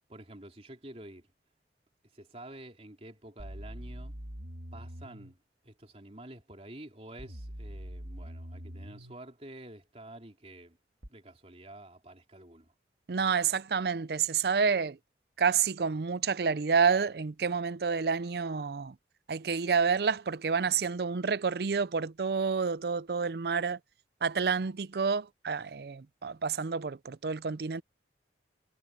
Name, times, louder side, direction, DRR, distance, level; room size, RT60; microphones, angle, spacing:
voice 1, 0.1-1.3 2.1-4.1 4.7-10.8 11.1-12.7, right 1 dB, 35° right, 3.3 m, -49 dB
sound 1, 3.4-5.4 7.2-9.2 11.0-11.1, equal, 85° right, 3.1 m, -43 dB
voice 2, 13.1-15.0 15.4-19.0 19.3-23.8 24.2-27.8, right 5 dB, 60° right, 0.5 m, -29 dB
head